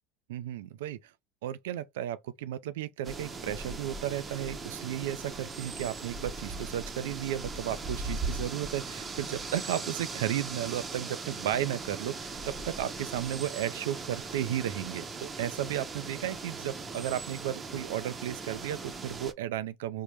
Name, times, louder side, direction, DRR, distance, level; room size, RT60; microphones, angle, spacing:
voice 1, 0.3-1.0 1.4-20.0, right 11 dB, 80° right, 0.3 m, -34 dB
sound 1, 3.0-19.3, right 3 dB, 25° right, 0.7 m, -39 dB
3.6 x 2.1 x 3.0 m
hypercardioid pair, 85°, 0 cm